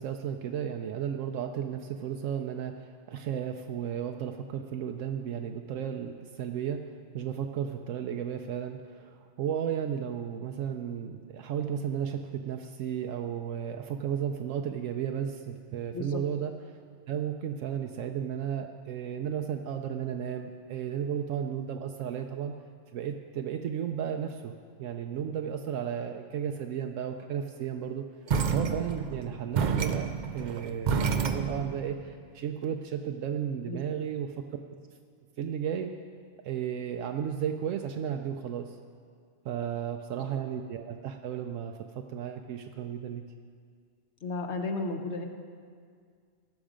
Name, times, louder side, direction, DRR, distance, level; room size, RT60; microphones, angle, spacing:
voice 1, 0.0-16.8 17.1-22.5 22.9-24.5 24.8-28.0 28.5-34.4 35.4-35.9 36.4-38.8 39.4-43.2, right 8 dB, 80° right, 4 dB, 1.0 m, -34 dB
sound 1, 28.3-31.8, right 6 dB, 50° right, 0.6 m, -29 dB
voice 2, 44.2-45.3, left 3 dB, 60° left, 4 dB, 1.2 m, -33 dB
19.0 x 6.4 x 5.0 m, 2.1 s
omnidirectional pair, 1.3 m